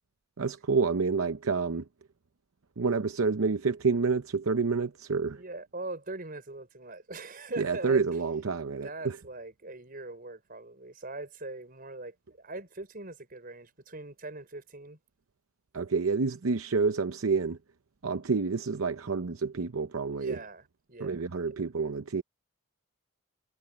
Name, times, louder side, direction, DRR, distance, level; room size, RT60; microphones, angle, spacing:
voice 1, 0.4-1.9 2.8-5.4 7.6-9.2 15.7-17.6 18.0-20.4 21.0-22.2, right 4 dB, 70° right, 0.7 m, -28 dB
voice 2, 5.3-8.1 8.6-15.0 20.2-21.2, right 2 dB, 40° right, 5.4 m, -41 dB
head